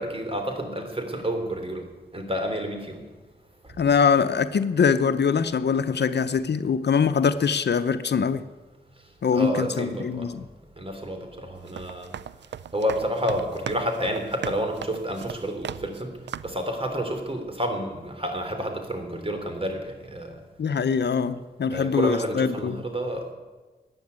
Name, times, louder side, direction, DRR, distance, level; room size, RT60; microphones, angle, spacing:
voice 1, 0.0-1.9 2.1-3.0 9.3-10.3 10.8-12.1 12.7-16.1 16.4-20.4 21.7-23.3, equal, 30° right, 5 dB, 3.4 m, -29 dB
voice 2, 3.8-8.4 9.2-10.4 20.6-22.8, left 6 dB, 70° left, 11 dB, 0.8 m, -23 dB
sound 1, 11.6-16.0 16.3-16.7, right 9 dB, 80° right, 0.5 m, -37 dB
15.0 x 9.8 x 9.5 m, 1.2 s
cardioid pair, 60°, 18 cm